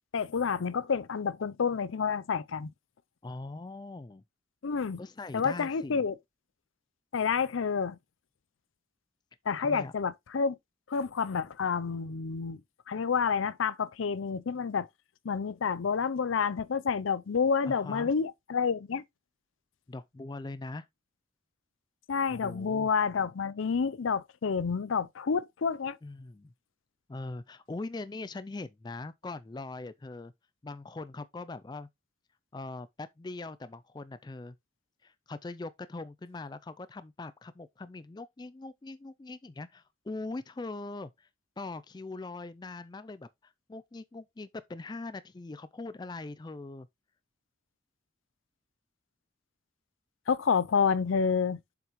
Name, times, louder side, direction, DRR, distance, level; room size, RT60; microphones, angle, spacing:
voice 1, 0.1-2.7 4.6-5.0 5.3-6.1 7.1-8.0 9.5-10.6 10.9-12.6 12.9-14.9 15.2-19.0 22.1-26.0 50.3-51.6, left 6 dB, 85° left, 0.5 m, -29 dB
voice 2, 3.2-4.2 5.0-6.0 9.6-9.9 17.7-18.1 19.9-20.9 22.3-22.9 26.0-26.5 27.1-30.3 30.6-31.9 32.5-34.6 35.0-41.3 41.6-46.9, left 3 dB, 20° left, 0.3 m, -41 dB
7.3 x 5.8 x 3.0 m
head